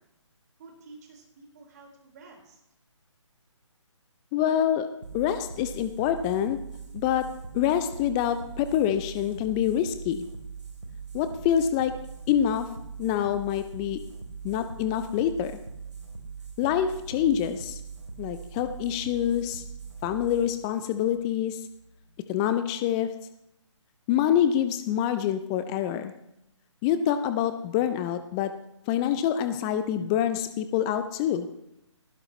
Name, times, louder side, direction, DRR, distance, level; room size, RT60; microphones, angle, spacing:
voice 1, 0.6-2.6, right 3 dB, 35° right, 0 dB, 4.5 m, -50 dB
voice 2, 4.3-4.9 5.1-6.6 6.9-7.3 7.5-10.2 11.1-11.9 12.3-12.7 13.0-14.0 14.4-15.6 16.6-17.8 18.2-19.6 20.0-21.6 22.3-23.1 24.1-26.1 26.8-28.5 28.9-31.5, left 10 dB, 10° left, 10 dB, 0.4 m, -26 dB
sound 1, 5.0-22.1, right 5 dB, 70° right, 3.3 m, -41 dB
19.0 x 15.0 x 3.1 m, 0.81 s
figure-of-eight pair, 145°, 16 cm